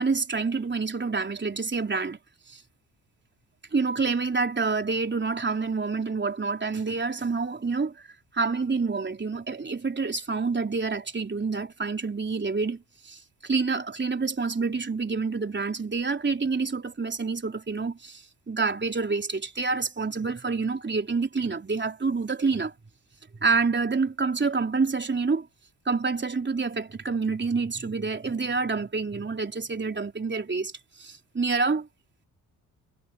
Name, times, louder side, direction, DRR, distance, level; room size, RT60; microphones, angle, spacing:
voice 1, 0.0-2.2 2.5-2.6 3.7-8.1 8.3-22.7 23.4-25.5 25.9-30.7 31.0-31.9, right 4 dB, 25° right, 3.6 m, -27 dB
figure-of-eight pair, 45°, 45 cm